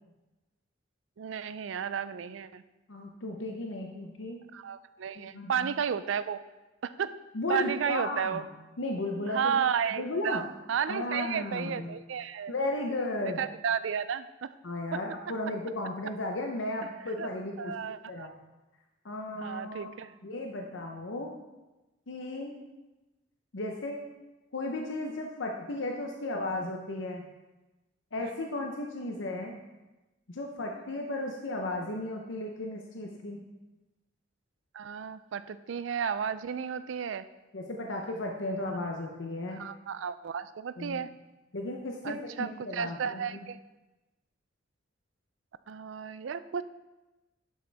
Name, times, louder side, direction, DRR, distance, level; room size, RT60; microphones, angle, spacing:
voice 1, 1.2-2.6 4.5-6.4 6.8-7.1 7.5-8.4 9.3-10.4 10.7-12.5 13.2-14.5 14.9-15.0 17.2-17.3 17.6-18.3 19.4-20.1 34.7-37.3 39.6-41.1 42.0-43.6 45.7-46.6, right 7 dB, 85° right, 14 dB, 0.4 m, -33 dB
voice 2, 2.9-4.4 5.1-5.7 7.3-8.5 8.8-9.6 9.9-10.4 10.9-11.9 12.5-13.4 14.6-17.7 18.1-18.3 19.0-19.9 20.2-21.3 22.1-22.5 23.5-24.0 24.5-27.3 28.1-29.6 30.3-33.4 37.5-39.6 40.8-41.0 41.5-43.2, left 2 dB, 80° left, 1 dB, 0.8 m, -35 dB
11.0 x 6.6 x 3.4 m, 1.1 s
head